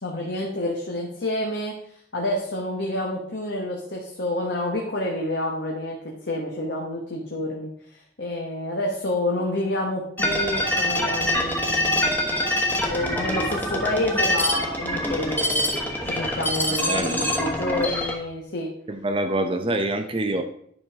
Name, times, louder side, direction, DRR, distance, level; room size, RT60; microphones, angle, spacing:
voice 1, 0.0-1.8 2.1-7.7 8.2-12.3 12.9-15.7 16.0-18.7, left 1 dB, 70° left, -1 dB, 1.3 m, -28 dB
sound 1, 10.2-18.1, left 1 dB, 10° left, 1.2 m, -25 dB
voice 2, 16.9-17.3 18.9-20.4, right 1 dB, 30° right, 6 dB, 0.6 m, -26 dB
10.5 x 5.4 x 3.6 m, 0.65 s
head